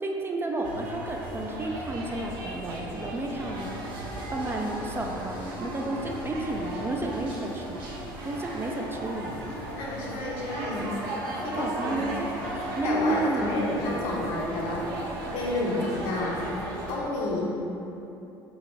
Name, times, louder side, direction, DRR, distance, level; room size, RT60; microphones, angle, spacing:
voice 1, 0.0-3.8 4.3-7.8 8.2-9.4 11.5-14.1, right 2 dB, 20° right, 1 dB, 0.3 m, -32 dB
sound 1, 0.6-17.0, right 1 dB, 70° right, 0.6 m, -36 dB
sound 2, 3.6-8.9, equal, 40° right, 1.2 m, -49 dB
voice 2, 9.8-10.9 11.4-12.0 12.8-14.8 15.3-16.4 16.9-17.5, left 2 dB, 60° left, -4 dB, 0.8 m, -30 dB
4.6 x 2.5 x 3.2 m, 3.0 s
figure-of-eight pair, 60°, 12 cm